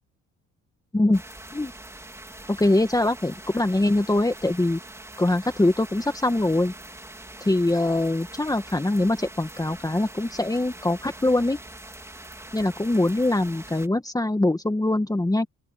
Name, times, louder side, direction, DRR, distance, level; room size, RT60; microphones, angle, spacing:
sound 1, 1.1-13.9, right 1 dB, 10° right, 3.2 m, -43 dB
voice 1, 2.5-4.8 5.2-6.7 7.4-11.6 12.5-15.5, left 2 dB, 10° left, 2.0 m, -23 dB
open air
cardioid pair, 90°, 30 cm